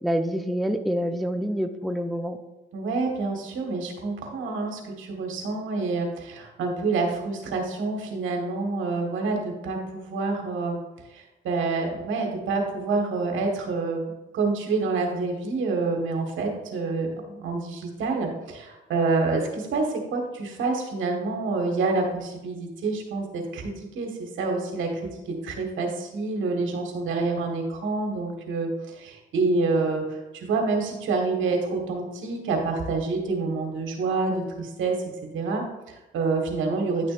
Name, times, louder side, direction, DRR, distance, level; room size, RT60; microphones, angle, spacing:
voice 1, 0.0-2.4, equal, ahead, 6 dB, 0.5 m, -27 dB
voice 2, 2.7-10.8 11.1-14.0 14.3-35.0 35.3-37.1, right 3 dB, 80° right, 2 dB, 1.6 m, -27 dB
9.9 x 6.2 x 2.5 m, 1.0 s
cardioid pair, 90°, 20 cm